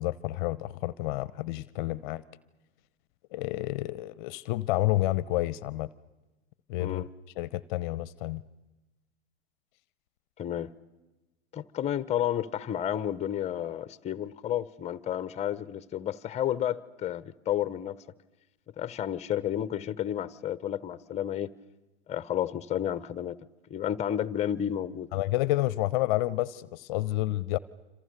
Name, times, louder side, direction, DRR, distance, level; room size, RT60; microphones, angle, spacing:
voice 1, 0.0-2.2 3.3-5.9 6.7-7.0 7.4-8.4 25.1-27.6, left 17 dB, 50° left, 0.8 m, -29 dB
voice 2, 10.4-10.7 11.5-18.0 18.8-21.5 22.1-23.4 23.7-25.1, left 10 dB, 20° left, 0.9 m, -31 dB
27.0 x 26.5 x 6.7 m
hypercardioid pair, 100°, 32 cm